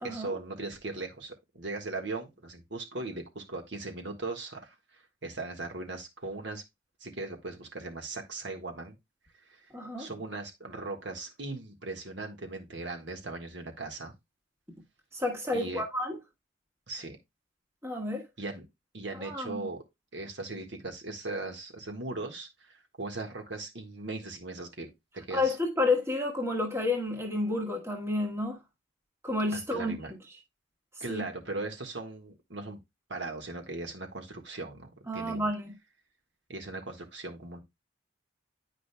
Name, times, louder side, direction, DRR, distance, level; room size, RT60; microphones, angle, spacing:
voice 1, 0.0-6.6 7.0-9.0 9.5-9.7 10.0-14.1 15.5-15.8 16.9-17.2 18.4-18.6 18.9-19.8 20.1-25.6 29.5-30.1 31.0-32.8 33.1-35.5 36.5-37.6, right 2 dB, 65° right, 1.5 m, -39 dB
voice 2, 9.7-10.1 15.1-16.2 17.8-18.2 19.2-19.7 25.3-28.6 29.2-29.9 31.0-31.2 35.1-35.7, left 2 dB, 15° right, 1.3 m, -30 dB
9.8 x 5.0 x 2.2 m
head